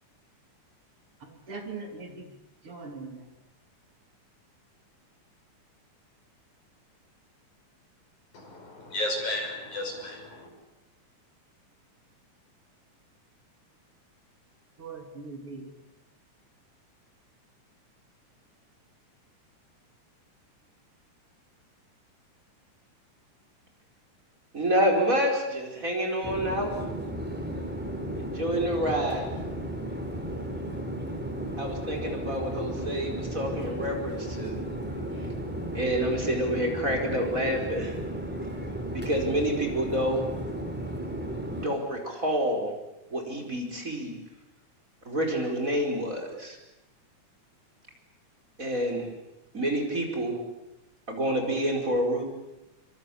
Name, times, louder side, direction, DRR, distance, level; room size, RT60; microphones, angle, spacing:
voice 1, 1.2-3.3 14.8-15.7, right 3 dB, 45° right, 4 dB, 3.7 m, -41 dB
voice 2, 8.3-10.5, left 1 dB, 70° left, 3 dB, 7.5 m, -33 dB
voice 3, 24.5-26.7 28.2-29.3 31.6-34.6 35.7-38.0 38.9-40.2 41.6-42.7 43.1-44.1 45.1-46.6 48.6-49.1 49.5-50.4 51.1-52.2, equal, 25° right, 1 dB, 5.1 m, -28 dB
Chatter / Fixed-wing aircraft airplane, 26.2-41.7, right 1 dB, 5° right, 3.6 m, -34 dB
26.5 x 25.0 x 8.5 m, 0.96 s
omnidirectional pair, 3.5 m